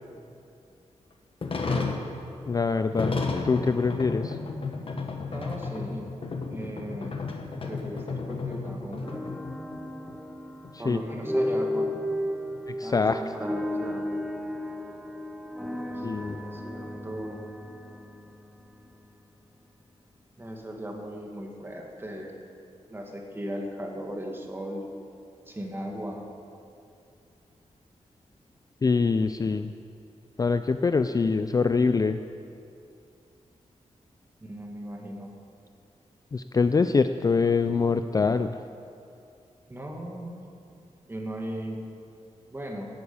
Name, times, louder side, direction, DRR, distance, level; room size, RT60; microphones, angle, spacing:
sound 1, 1.4-9.8 10.1-10.2 10.6-10.7 11.1-12.8, left 4 dB, 45° left, 1.3 m, -33 dB
voice 1, 1.6-1.9 5.3-6.1 6.5-7.2 7.6-9.2 10.8-11.9 12.8-14.1 15.9-17.5 20.4-22.3 22.9-24.8 25.5-26.3 34.4-35.3 39.7-40.3 41.1-41.8 42.5-42.9, equal, 20° right, 1 dB, 1.9 m, -37 dB
voice 2, 2.5-3.1 3.4-4.4 10.9-11.0 12.8-13.2 16.0-16.4 28.8-29.7 30.4-32.2 36.3-38.5, left 4 dB, 30° left, 10 dB, 0.4 m, -24 dB
sound 2, 9.0-19.1, left 1 dB, ahead, 0.7 m, -34 dB
12.5 x 9.4 x 8.4 m, 2.6 s
wide cardioid pair, 135°, 12 cm